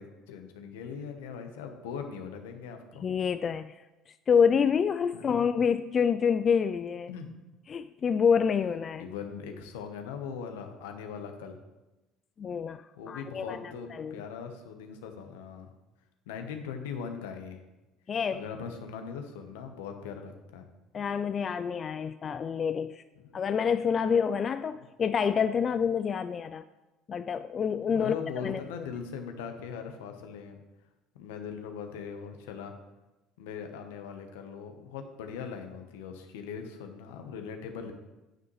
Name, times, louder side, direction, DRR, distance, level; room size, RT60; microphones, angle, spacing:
voice 1, 0.0-3.1 5.1-5.4 7.1-7.3 9.0-11.6 13.0-15.7 16.3-17.6 18.3-20.6 23.2-23.4 24.7-24.8 27.8-30.6 31.1-32.7 33.4-37.9, left 6 dB, 80° left, 5 dB, 1.1 m, -40 dB
voice 2, 3.0-3.8 4.3-7.1 7.7-9.1 12.4-13.6 13.9-14.2 18.1-18.4 20.9-23.0 23.3-26.6 27.1-28.9, left 6 dB, 40° left, 11 dB, 0.3 m, -27 dB
9.3 x 9.0 x 3.2 m, 1.1 s
hypercardioid pair, 70°, 0 cm